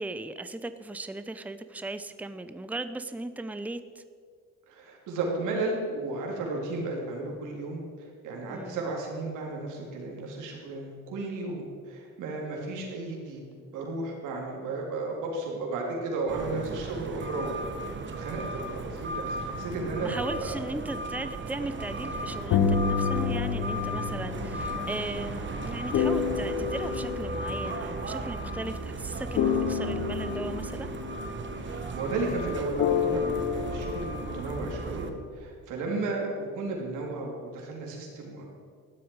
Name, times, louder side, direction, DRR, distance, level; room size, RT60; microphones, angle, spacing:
voice 1, 0.0-4.0 8.5-8.8 19.7-30.9 35.9-36.2, right 2 dB, 5° right, 11 dB, 0.7 m, -37 dB
voice 2, 4.7-13.4 13.7-20.5 31.6-38.4, right 3 dB, 90° right, -1 dB, 3.6 m, -34 dB
sound 1, 16.3-35.1, right 2 dB, 40° right, 1.5 m, -36 dB
sound 2, 22.0-28.7 29.4-32.1 32.8-34.4, left 7 dB, 80° left, 1.2 m, -30 dB
15.0 x 12.0 x 4.8 m, 2.2 s
cardioid pair, 90°, 30 cm